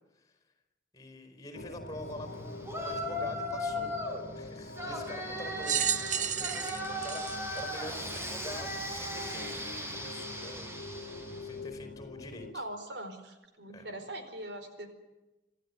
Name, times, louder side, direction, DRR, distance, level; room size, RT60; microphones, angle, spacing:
voice 1, 0.9-3.9 4.3-10.7 11.4-12.5 13.7-13.9, left 1 dB, 20° left, 7 dB, 4.6 m, -46 dB
sound 1, 1.5-12.5, left 2 dB, 65° left, 1.9 m, -45 dB
Yell, 2.6-4.2 4.7-11.5, equal, 15° right, 4.7 m, -37 dB
sound 2, 5.6-8.3 9.0-9.1 10.2-10.3, right 8 dB, 45° right, 0.9 m, -32 dB
voice 2, 12.5-14.9, right 1 dB, 90° right, 7 dB, 4.5 m, -41 dB
26.5 x 15.0 x 9.7 m, 1.1 s
head